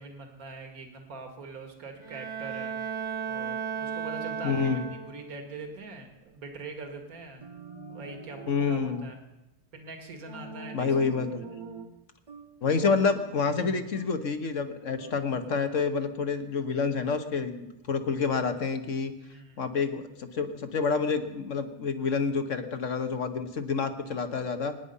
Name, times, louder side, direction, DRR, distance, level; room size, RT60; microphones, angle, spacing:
voice 1, 0.0-2.8 3.3-7.4 7.9-9.2 9.7-11.1 12.8-12.9 19.3-19.7, right 3 dB, 60° right, 4 dB, 2.3 m, -43 dB
Bowed string instrument, 2.0-5.4, right 7 dB, 80° right, 2.4 m, -35 dB
voice 2, 4.4-4.8 8.5-9.1 10.7-11.4 12.6-19.1 19.6-24.7, left 5 dB, 50° left, 8 dB, 1.4 m, -28 dB
sound 1, 7.4-9.1 10.3-11.9 12.3-14.3 15.0-15.7, right 4 dB, 30° right, 1.2 m, -44 dB
25.0 x 9.9 x 5.6 m, 0.95 s
omnidirectional pair, 1.7 m